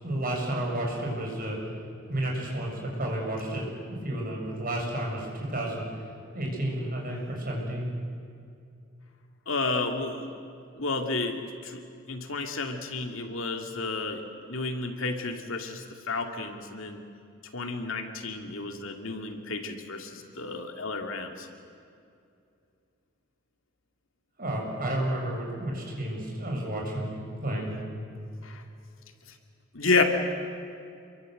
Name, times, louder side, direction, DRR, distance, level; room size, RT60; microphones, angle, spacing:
voice 1, 0.0-1.6 2.1-6.1 6.3-7.9 24.4-27.8, right 1 dB, 45° right, -1 dB, 7.1 m, -31 dB
voice 2, 9.5-10.3 10.8-11.8 12.1-14.2 14.5-17.0 17.5-21.5 28.4-28.6 29.7-30.0, left 3 dB, 70° left, 5 dB, 2.5 m, -31 dB
27.5 x 23.0 x 7.9 m, 2.5 s
head